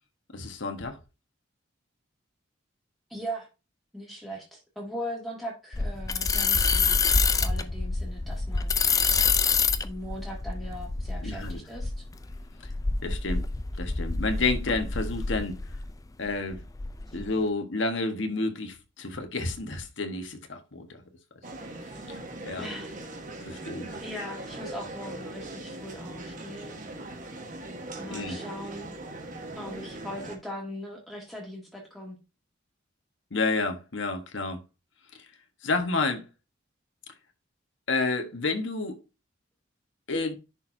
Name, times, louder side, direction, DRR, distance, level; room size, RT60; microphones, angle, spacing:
voice 1, 0.3-1.0 11.2-11.6 13.0-13.4 13.8-15.6 16.2-16.6 17.1-21.0 22.1-22.2 22.4-22.7 23.4-23.9 28.1-28.4 33.3-34.6 35.6-36.3 37.9-39.0 40.1-40.4, left 3 dB, 70° left, 1.3 m, -30 dB
voice 2, 3.1-3.5 3.9-7.0 7.3-9.1 9.8-12.0 22.6-23.0 23.5-26.8 28.0-28.9 29.6-32.2, equal, ahead, 2.0 m, -39 dB
sound 1, 5.7-15.9 16.3-17.2, left 4 dB, 15° left, 0.3 m, -27 dB
sound 2, 21.4-30.4, right 2 dB, 40° right, 1.3 m, -40 dB
10.5 x 4.4 x 2.7 m
head